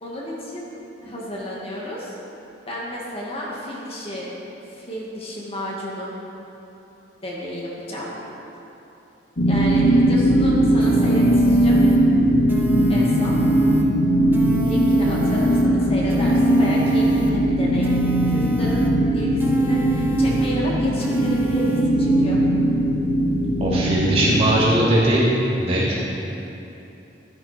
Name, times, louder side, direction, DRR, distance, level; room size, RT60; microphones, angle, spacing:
voice 1, 0.0-0.7 1.0-2.2 2.7-4.3 4.7-6.1 7.2-8.1 9.5-11.8 12.9-13.4 14.6-17.9 18.3-18.9 19.1-22.5, equal, 35° left, -4 dB, 2.1 m, -32 dB
sound 1, 9.4-24.6, right 1 dB, 75° left, 2.1 m, -19 dB
sound 2, 10.8-12.0 12.5-13.8 14.3-15.6 16.1-17.3 17.8-18.9 19.4-20.5 21.0-21.8, right 2 dB, 10° right, 1.3 m, -30 dB
voice 2, 23.6-26.1, right 1 dB, 35° right, -7 dB, 3.3 m, -19 dB
14.0 x 12.0 x 4.4 m, 2.9 s
head